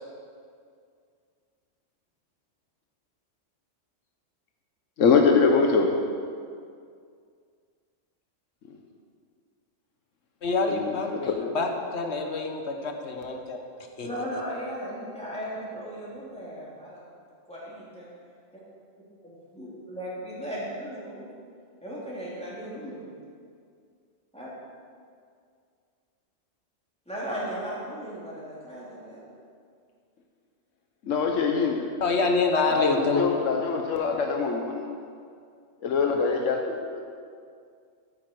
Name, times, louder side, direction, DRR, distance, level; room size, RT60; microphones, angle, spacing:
voice 1, 5.0-5.9 10.7-11.5 31.0-32.0 32.7-34.9 35.8-37.0, left 5 dB, 90° left, 2 dB, 1.3 m, -24 dB
voice 2, 10.4-13.6 14.0-14.1 32.0-33.2, left 3 dB, 60° left, 3 dB, 1.4 m, -26 dB
voice 3, 14.0-17.0 17.5-18.1 18.5-18.6 19.2-21.3 21.8-23.0 24.3-24.5 27.1-29.2, equal, 5° left, -8 dB, 3.4 m, -36 dB
14.0 x 8.8 x 4.7 m, 2.2 s
omnidirectional pair, 1.3 m